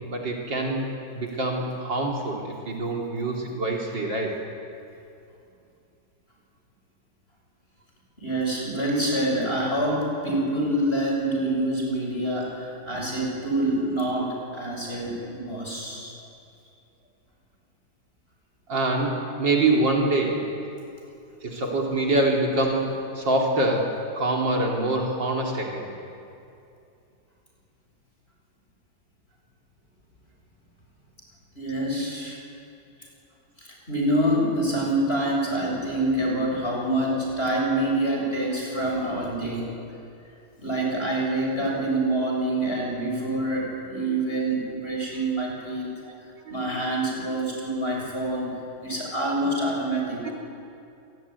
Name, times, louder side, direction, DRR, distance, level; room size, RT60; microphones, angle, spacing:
voice 1, 0.1-0.9 1.1-4.3 11.6-11.7 14.9-15.1 18.7-20.4 21.4-23.9 24.2-25.9 46.1-46.2 46.5-46.7 50.2-50.3, right 2 dB, 55° right, 0 dB, 3.5 m, -25 dB
voice 2, 8.2-16.1 31.6-32.4 33.6-39.7 40.6-45.9 46.5-48.5 48.8-50.2, right 1 dB, 25° left, -2 dB, 7.4 m, -26 dB
27.5 x 19.5 x 9.5 m, 2.6 s
omnidirectional pair, 2.4 m